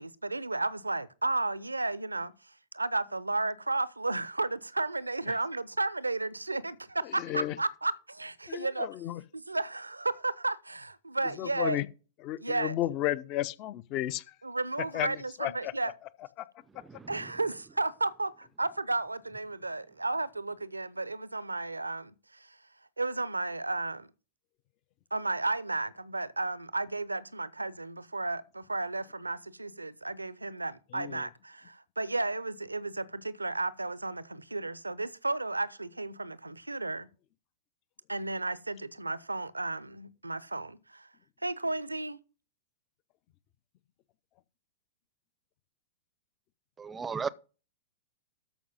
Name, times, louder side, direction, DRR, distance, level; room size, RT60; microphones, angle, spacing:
voice 1, 0.0-2.3 2.7-8.9 9.3-11.8 12.4-12.8 14.4-15.9 17.1-22.6 23.0-24.1 25.1-37.1 38.1-41.1 41.4-42.2, right 2 dB, 85° right, 0.6 m, -33 dB
voice 2, 7.2-7.5 8.5-9.2 11.4-11.9 12.2-14.2 14.9-15.7 30.9-31.2, left 14 dB, 40° left, 0.6 m, -33 dB
voice 3, 46.8-47.3, right 6 dB, 15° right, 0.6 m, -34 dB
13.0 x 5.3 x 5.3 m
figure-of-eight pair, 100°, 0 cm